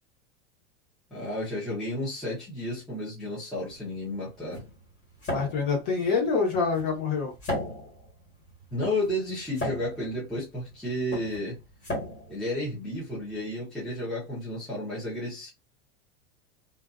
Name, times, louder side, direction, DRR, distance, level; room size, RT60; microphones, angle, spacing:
voice 1, 1.1-4.7 8.7-11.6 12.3-15.5, left 1 dB, ahead, 0.6 m, -32 dB
sound 1, 3.6-13.4, left 1 dB, 25° left, 1.3 m, -38 dB
voice 2, 5.3-7.3, left 5 dB, 45° left, 1.1 m, -26 dB
2.5 x 2.4 x 2.3 m
supercardioid pair, 180°, 32 cm